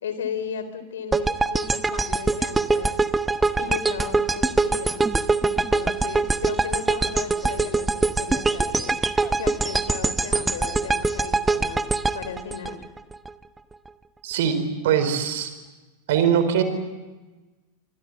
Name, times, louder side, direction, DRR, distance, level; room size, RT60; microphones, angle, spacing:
voice 1, 0.0-2.9 3.6-5.1 5.4-9.0 9.4-11.9 12.1-12.8, left 7 dB, 60° left, 11 dB, 3.6 m, -35 dB
sound 1, 1.1-13.3, right 3 dB, 10° right, 1.0 m, -23 dB
voice 2, 14.2-14.6 14.8-15.5 16.1-16.6, right 8 dB, 55° right, 10 dB, 4.4 m, -21 dB
26.5 x 26.0 x 7.6 m, 1.2 s
figure-of-eight pair, 90°, 0 cm